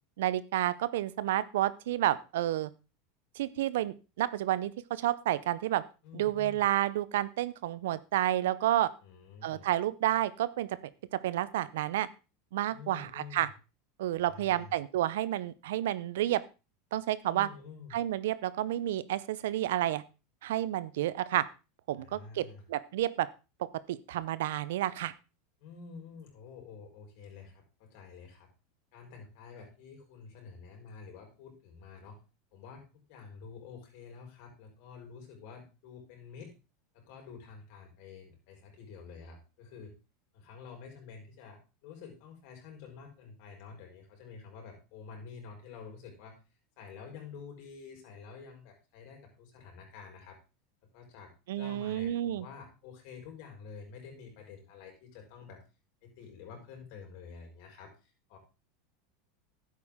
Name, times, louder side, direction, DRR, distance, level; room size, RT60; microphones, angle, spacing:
voice 1, 0.2-2.7 3.4-5.8 6.1-8.9 9.4-10.7 11.1-12.1 12.5-13.5 14.0-16.4 16.9-17.5 17.9-20.0 20.4-21.4 21.9-23.3 23.9-25.1 51.5-52.4, right 13 dB, 75° right, 17 dB, 0.6 m, -30 dB
voice 2, 6.0-6.6 9.0-9.7 12.7-13.5 14.3-14.7 17.3-18.0 22.0-22.6 25.6-28.5 28.9-32.2 32.5-36.5 36.9-39.9 40.3-46.4 46.8-50.4 50.9-55.6 56.0-58.4, left 5 dB, 60° left, 1 dB, 5.1 m, -49 dB
11.0 x 8.4 x 3.7 m, 0.30 s
hypercardioid pair, 95°, 0 cm